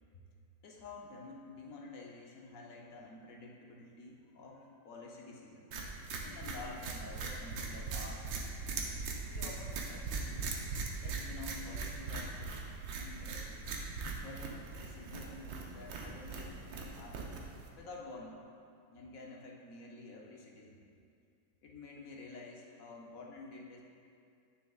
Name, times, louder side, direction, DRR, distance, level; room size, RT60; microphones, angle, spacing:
voice 1, 0.6-5.7 6.2-8.3 9.2-10.5 11.0-12.6 13.0-13.6 14.2-18.4 18.9-20.8 21.6-23.8, left 3 dB, 60° left, -1 dB, 0.9 m, -50 dB
sound 1, 5.7-17.7, right 4 dB, 85° right, 1.5 m, -40 dB
9.8 x 6.2 x 2.4 m, 2.4 s
omnidirectional pair, 2.0 m